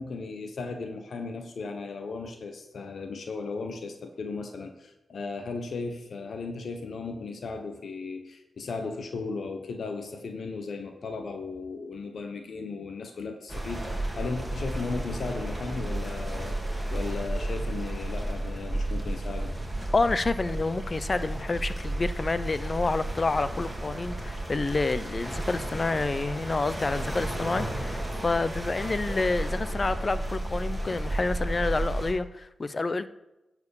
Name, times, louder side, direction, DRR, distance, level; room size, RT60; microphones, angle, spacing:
voice 1, 0.0-19.6, left 4 dB, 65° left, 6 dB, 1.1 m, -36 dB
sound 1, 13.5-32.1, right 1 dB, 5° right, 2.6 m, -33 dB
voice 2, 19.9-33.1, left 3 dB, 40° left, 14 dB, 0.6 m, -28 dB
10.5 x 4.8 x 7.1 m, 0.96 s
supercardioid pair, 45°, 0 cm